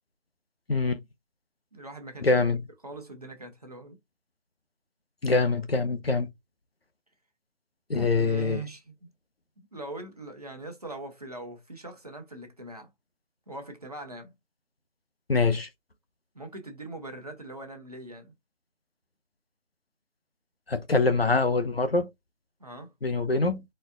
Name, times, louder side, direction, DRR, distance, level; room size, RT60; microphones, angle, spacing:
voice 1, 0.7-1.0 2.2-2.6 5.2-6.3 7.9-8.6 15.3-15.7 20.7-22.1 23.0-23.6, left 3 dB, 55° left, 0.7 m, -24 dB
voice 2, 1.7-2.5 2.8-4.0 7.9-9.1 9.6-12.9 13.5-14.3 16.3-18.3 22.6-22.9, right 2 dB, 35° right, 1.1 m, -41 dB
4.3 x 3.2 x 2.5 m
figure-of-eight pair, 170°, 35 cm